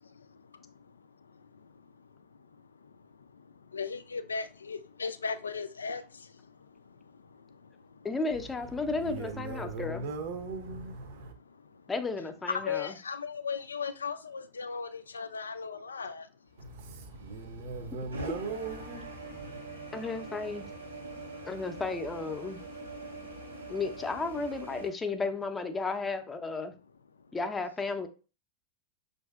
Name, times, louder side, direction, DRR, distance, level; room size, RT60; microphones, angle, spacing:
voice 1, 3.7-6.0 12.5-16.2, left 5 dB, 75° left, 0.3 m, -36 dB
voice 2, 8.0-10.1 11.9-13.0 19.9-20.7 21.4-22.6 23.7-26.7 27.3-28.1, left 3 dB, 15° left, 0.6 m, -33 dB
voice 3, 8.9-11.3 16.6-19.6, right 3 dB, 55° right, 0.7 m, -39 dB
sound 1, 16.6-24.9, right 2 dB, 80° right, 1.3 m, -44 dB
6.1 x 2.6 x 2.3 m
figure-of-eight pair, 90°, 0 cm